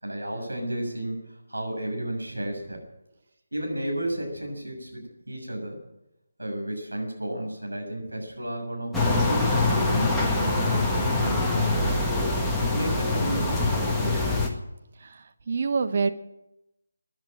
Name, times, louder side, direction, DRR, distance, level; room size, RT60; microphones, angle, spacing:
voice 1, 0.0-2.9 3.5-5.8 6.4-12.0 12.6-14.3, right 1 dB, 80° right, 2 dB, 6.6 m, -33 dB
sound 1, 8.9-14.5, left 2 dB, 5° left, 1.7 m, -24 dB
voice 2, 15.0-16.1, right 4 dB, 45° right, 9 dB, 1.2 m, -26 dB
15.0 x 10.5 x 8.9 m, 0.90 s
figure-of-eight pair, 155°, 0 cm